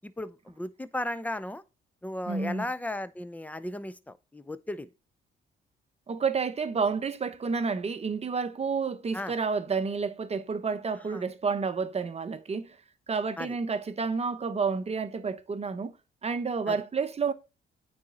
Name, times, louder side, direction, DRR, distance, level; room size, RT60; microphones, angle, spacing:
voice 1, 0.0-1.6 2.0-4.9 9.1-9.3 11.1-11.2 13.4-13.6 16.7-16.8, left 1 dB, 5° left, 0.6 m, -35 dB
voice 2, 2.3-2.7 6.1-12.8 13.1-15.9 16.2-17.3, right 5 dB, 30° right, 0.9 m, -30 dB
9.0 x 4.3 x 3.9 m
cardioid pair, 90°, 20 cm